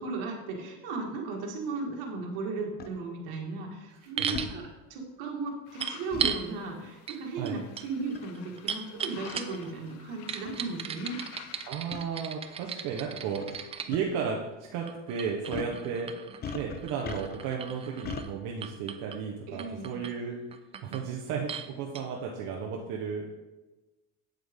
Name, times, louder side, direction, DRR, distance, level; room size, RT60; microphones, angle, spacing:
voice 1, 0.0-11.2 15.7-15.9 19.5-20.1, right 3 dB, 85° right, -1 dB, 1.9 m, -36 dB
sound 1, 2.8-2.9 4.3-4.5 6.1-6.4 8.1-8.4 9.2-9.3 10.1-10.2 10.4-10.6 11.9-12.0 13.4-13.6 13.9-14.0 15.5-15.8 16.4-17.5 18.0-18.3, left 6 dB, 30° left, 0.6 m, -38 dB
voice 2, 4.0-4.5 7.4-7.6 11.6-14.4 14.7-16.1 16.5-20.4 20.8-23.2, right 6 dB, 65° right, -1 dB, 1.1 m, -34 dB
sound 2, 4.2-4.5 5.8-6.4 7.1-7.2 7.5-9.7 10.3-13.9 14.9-18.3 18.6-19.2 19.6-20.1 20.5-21.1 21.5-21.7 22.0-22.1, right 7 dB, 20° right, 0.3 m, -37 dB
sound 3, 5.7-11.7, left 10 dB, 80° left, 0.8 m, -50 dB
8.4 x 7.7 x 3.6 m, 1.1 s
cardioid pair, 145°, 34 cm